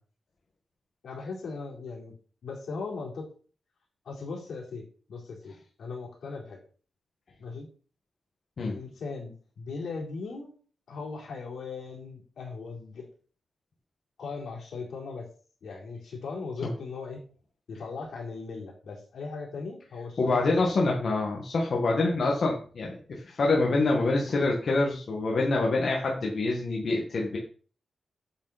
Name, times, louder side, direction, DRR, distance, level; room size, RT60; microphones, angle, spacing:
voice 1, 1.0-2.1 2.4-3.3 4.0-6.6 7.4-7.7 8.6-10.5 10.9-13.1 14.2-15.3 15.6-17.2 17.7-20.5, left 4 dB, 75° left, -2 dB, 4.2 m, -38 dB
voice 2, 20.2-27.4, left 3 dB, 50° left, -2 dB, 2.0 m, -26 dB
8.6 x 8.0 x 4.4 m, 0.41 s
wide cardioid pair, 155°, 0 cm